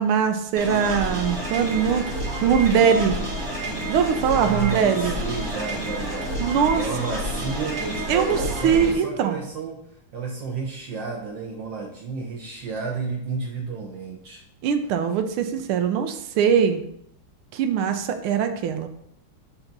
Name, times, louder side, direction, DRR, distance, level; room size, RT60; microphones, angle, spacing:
voice 1, 0.0-3.2 3.9-5.2 6.4-6.8 8.1-8.4 8.6-9.4 14.6-16.8 17.5-18.9, right 7 dB, 85° right, 7 dB, 1.5 m, -22 dB
sound 1, 0.6-9.0, right 1 dB, 30° right, 1.1 m, -29 dB
voice 2, 4.3-6.5 6.7-9.8 10.1-14.4, right 5 dB, 65° right, -1 dB, 1.4 m, -31 dB
7.8 x 2.7 x 5.9 m, 0.75 s
omnidirectional pair, 2.4 m